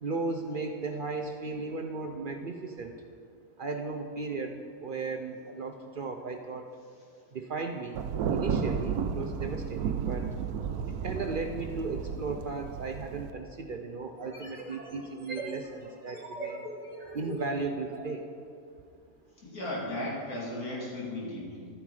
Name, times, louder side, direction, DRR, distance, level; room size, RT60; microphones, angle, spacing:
voice 1, 0.0-2.9 3.6-6.7 7.3-10.3 10.9-16.7 17.1-18.3, right 3 dB, 60° right, 4 dB, 0.5 m, -36 dB
Thunder, 8.0-13.3, right 7 dB, 80° right, 1.1 m, -33 dB
sound 1, 14.1-18.1, right 2 dB, 25° right, 2.2 m, -41 dB
voice 2, 19.4-21.7, left 1 dB, 70° left, -5 dB, 2.9 m, -36 dB
12.5 x 9.4 x 4.8 m, 2.4 s
omnidirectional pair, 1.6 m